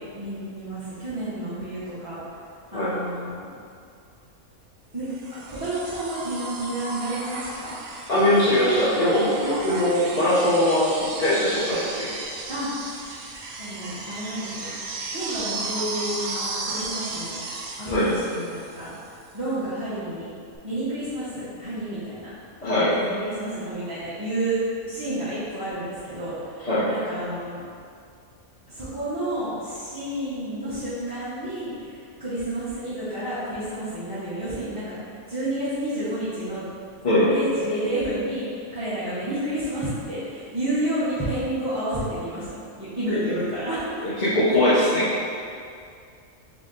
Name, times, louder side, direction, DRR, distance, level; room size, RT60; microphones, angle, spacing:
voice 1, 0.1-2.2 2.7-3.4 4.9-5.1 5.5-7.7 8.2-8.3 9.3-9.8 12.5-12.7 13.6-14.6 15.1-17.4 17.8-18.9 19.3-20.3 20.6-22.3 22.9-24.6 24.9-27.6 28.7-35.0 35.3-36.6 37.3-44.0, right 1 dB, 20° right, -15 dB, 0.8 m, -30 dB
sound 1, 5.1-19.1 20.5-20.6, right 3 dB, 80° right, 1.0 m, -35 dB
voice 2, 8.1-10.9 11.2-12.1 17.8-18.1 22.6-22.9 26.6-26.9 37.0-37.3 44.0-45.1, left 1 dB, 40° left, -11 dB, 0.7 m, -21 dB
3.9 x 2.9 x 3.8 m, 2.3 s
omnidirectional pair, 1.5 m